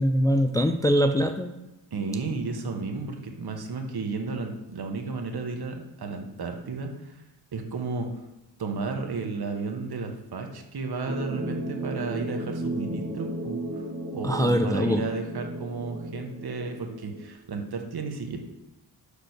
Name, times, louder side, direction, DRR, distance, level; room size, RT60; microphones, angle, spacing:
voice 1, 0.0-1.5 14.2-15.0, equal, 10° left, 6 dB, 0.4 m, -23 dB
voice 2, 1.9-7.2 7.5-8.1 8.6-13.8 14.1-18.4, right 4 dB, 60° right, 3 dB, 1.4 m, -33 dB
sound 1, 11.1-17.3, right 1 dB, 35° right, 2.5 m, -34 dB
5.9 x 5.2 x 6.6 m, 0.93 s
wide cardioid pair, 100°, 42 cm